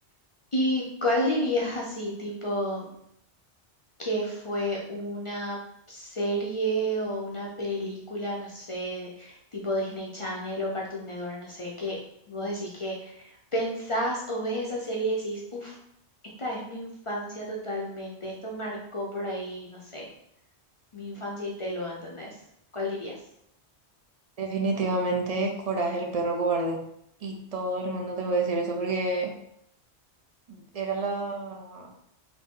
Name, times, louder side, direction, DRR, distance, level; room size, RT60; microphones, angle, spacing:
voice 1, 0.5-2.9 4.0-5.6 5.9-12.0 12.3-15.8 16.4-20.1 20.9-22.4 22.7-23.2, equal, 40° left, -2 dB, 0.5 m, -31 dB
voice 2, 24.4-26.8 27.2-29.3 30.5-31.9, right 3 dB, 45° right, 2 dB, 0.5 m, -28 dB
4.0 x 2.6 x 3.6 m, 0.74 s
omnidirectional pair, 1.1 m